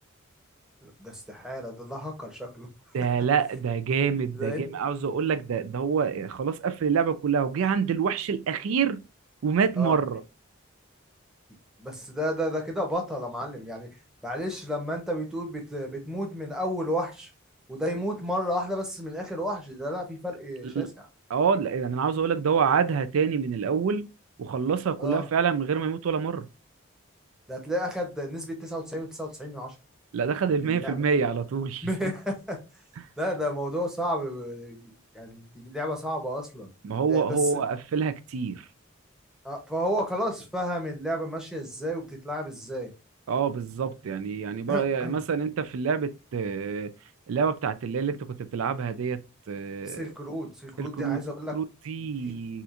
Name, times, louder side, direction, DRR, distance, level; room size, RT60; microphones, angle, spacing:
voice 1, 0.8-2.7 4.3-4.7 9.8-10.0 11.8-13.9 14.2-17.3 17.7-20.9 25.0-25.3 27.5-29.7 30.4-31.0 31.8-32.6 33.2-36.7 37.0-37.6 39.4-42.9 44.7-45.2 49.8-51.6, equal, 5° right, 0.8 m, -32 dB
voice 2, 2.9-9.0 9.4-10.2 21.3-24.1 24.4-26.5 30.1-31.9 33.0-33.1 36.8-38.7 43.3-46.9 47.3-49.2 49.5-50.1 50.8-51.2 51.5-52.6, right 6 dB, 85° right, 0.4 m, -26 dB
4.2 x 2.4 x 2.4 m
head